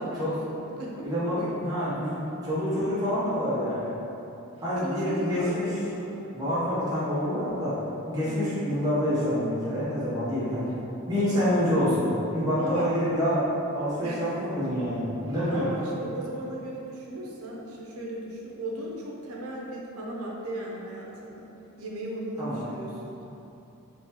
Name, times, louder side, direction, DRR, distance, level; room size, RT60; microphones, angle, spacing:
voice 1, 0.0-1.5 4.8-6.4 8.2-8.6 11.4-11.6 12.6-12.9 14.0-14.3 15.5-21.5 21.8-23.2, right 1 dB, 80° right, -3 dB, 0.7 m, -36 dB
voice 2, 1.0-3.9 4.6-5.8 6.3-7.8 8.1-10.7 11.1-13.4 13.7-15.7 22.4-22.7, equal, 15° right, -12 dB, 0.9 m, -27 dB
3.7 x 3.2 x 2.9 m, 3.0 s
head